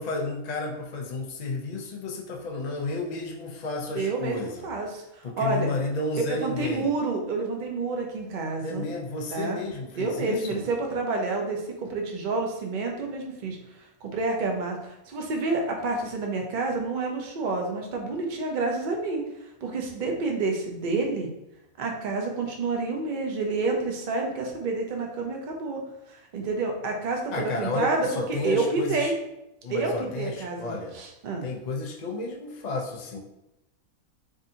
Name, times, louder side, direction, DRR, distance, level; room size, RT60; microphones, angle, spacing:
voice 1, 0.0-4.7 5.2-6.9 8.6-10.7 27.3-29.1 29.6-30.9 31.4-33.2, left 2 dB, 65° left, 0 dB, 0.4 m, -32 dB
voice 2, 3.9-5.7 6.4-8.9 9.3-9.6 10.0-13.6 14.0-19.2 19.6-21.3 21.8-25.8 26.1-29.1 29.7-31.5, right 3 dB, 50° right, 1 dB, 0.6 m, -29 dB
4.9 x 2.6 x 2.7 m, 0.90 s
omnidirectional pair, 1.5 m